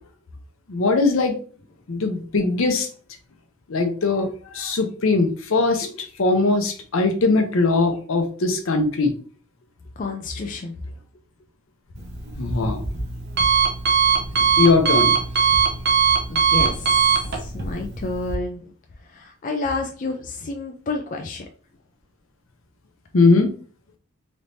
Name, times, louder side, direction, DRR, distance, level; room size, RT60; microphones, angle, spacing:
voice 1, 0.7-1.4 1.9-2.9 3.7-5.9 6.2-9.1 12.4-12.8 14.6-15.2 23.1-23.5, left 3 dB, 70° left, 6 dB, 0.7 m, -20 dB
voice 2, 10.0-10.7 14.1-14.5 16.3-18.7 19.1-21.5, left 3 dB, 40° left, 3 dB, 0.4 m, -30 dB
Alarm, 12.0-18.4, right 6 dB, 55° right, 0.8 m, -21 dB
3.3 x 3.1 x 2.6 m, 0.42 s
head